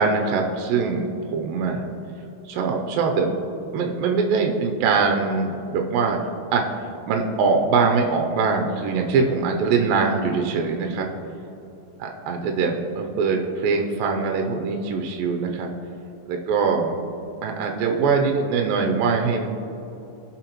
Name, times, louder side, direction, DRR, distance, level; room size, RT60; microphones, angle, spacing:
voice 1, 0.0-1.8 2.5-3.3 3.7-6.6 7.1-11.1 12.0-15.7 16.3-17.0 17.4-19.5, right 4 dB, 80° right, 2 dB, 2.4 m, -22 dB
17.0 x 5.8 x 3.0 m, 2.9 s
omnidirectional pair, 4.1 m